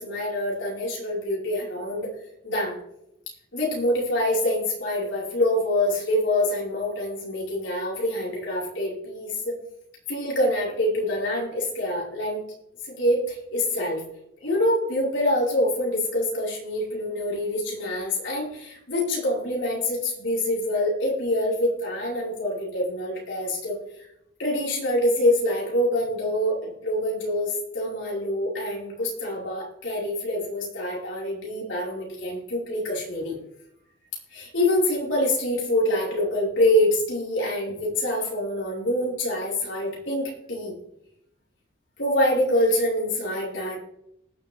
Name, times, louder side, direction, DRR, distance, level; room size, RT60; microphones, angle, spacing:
voice 1, 0.0-2.1 2.4-2.8 3.5-9.5 10.1-12.4 12.8-14.0 14.4-23.8 24.4-33.4 34.3-40.7 42.0-43.8, left 1 dB, 85° left, -4 dB, 5.6 m, -25 dB
19.5 x 7.5 x 3.7 m, 0.78 s
head